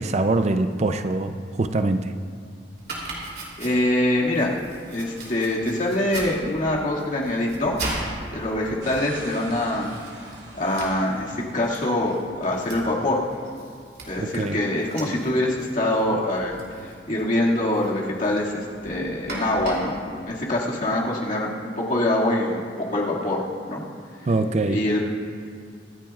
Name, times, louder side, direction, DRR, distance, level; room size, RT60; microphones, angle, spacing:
voice 1, 0.0-2.1 14.2-14.6 24.3-24.8, right 2 dB, 40° right, 9 dB, 0.4 m, -23 dB
Domestic sounds home sounds, 2.8-21.2, right 2 dB, 60° right, 2.9 m, -39 dB
voice 2, 3.6-4.5 4.9-7.8 8.3-13.2 14.1-20.0 20.3-22.6 22.9-23.4 23.7-23.8 24.1-24.3 24.7-25.0, left 1 dB, 50° left, -4 dB, 2.1 m, -24 dB
sound 1, 8.8-12.0, right 2 dB, 85° right, 2.7 m, -44 dB
24.5 x 10.5 x 2.4 m, 2.2 s
head